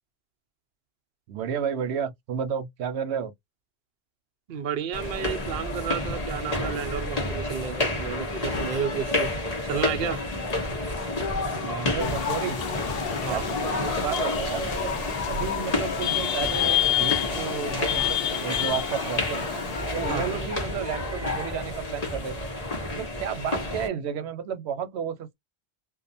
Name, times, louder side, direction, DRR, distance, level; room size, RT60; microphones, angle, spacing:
voice 1, 1.3-3.3 11.6-12.6 13.2-19.5 19.9-22.5 22.9-25.3, right 8 dB, 90° right, 0.9 m, -32 dB
voice 2, 4.5-9.3 9.6-10.2 13.1-13.5 20.0-20.4, right 8 dB, 60° right, 0.7 m, -32 dB
sound 1, 4.9-23.9, left 2 dB, 40° left, 0.9 m, -30 dB
sound 2, 12.0-20.5, left 10 dB, 65° left, 0.8 m, -29 dB
2.4 x 2.3 x 2.5 m
omnidirectional pair, 1.1 m